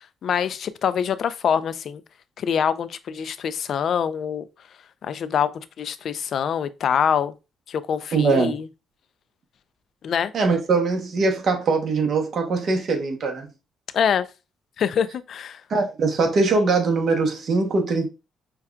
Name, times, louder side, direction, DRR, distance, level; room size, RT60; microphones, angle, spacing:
voice 1, 0.2-2.0 2.4-4.4 5.0-5.5 5.8-7.3 7.7-8.7 10.0-10.3 13.9-14.3 14.8-15.6, left 8 dB, 65° left, 0.4 m, -24 dB
voice 2, 8.1-8.6 10.3-13.5 15.7-18.1, right 3 dB, 55° right, 0.9 m, -21 dB
5.7 x 2.3 x 2.3 m
cardioid pair, 90°, 0 cm